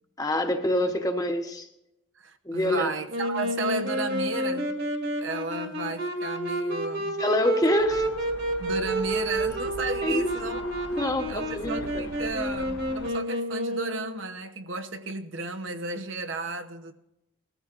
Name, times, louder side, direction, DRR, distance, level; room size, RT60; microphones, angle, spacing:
voice 1, 0.2-1.7 2.4-2.9 7.2-8.1 10.0-10.3 11.0-12.1, left 1 dB, 20° left, 0.9 m, -26 dB
voice 2, 2.2-4.8 5.2-7.2 8.6-10.6 11.3-16.9, right 4 dB, 85° right, 0.9 m, -34 dB
Wind instrument woodwind instrument, 3.1-14.2, right 1 dB, 55° right, 1.9 m, -30 dB
sound 1, 7.8-13.1, left 2 dB, 90° left, 0.7 m, -42 dB
19.5 x 14.0 x 2.5 m
head